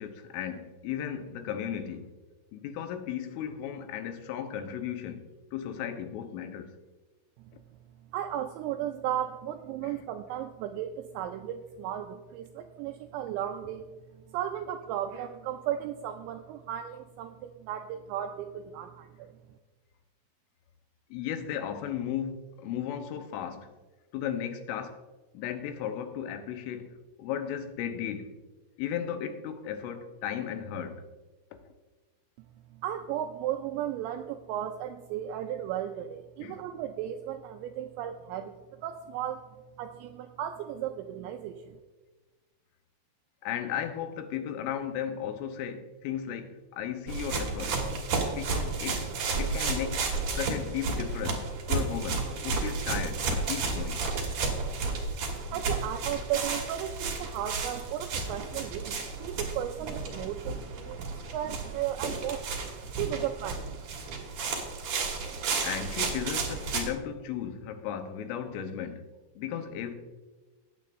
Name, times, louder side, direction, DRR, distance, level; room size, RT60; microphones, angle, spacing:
voice 1, 0.0-2.1 2.5-6.7 9.8-10.0 21.1-23.7 24.1-25.0 25.3-28.4 28.8-31.1 36.4-36.6 43.4-47.8 48.1-49.1 49.4-54.1 65.6-70.0, left 9 dB, 90° left, 3.4 m, -35 dB
voice 2, 8.1-19.3 32.7-38.6 38.8-39.4 39.8-41.8 55.5-62.4 62.8-63.7, right 11 dB, 85° right, 2.6 m, -35 dB
sound 1, 47.1-66.9, right 4 dB, 65° right, 1.8 m, -32 dB
18.5 x 8.4 x 2.5 m
omnidirectional pair, 5.6 m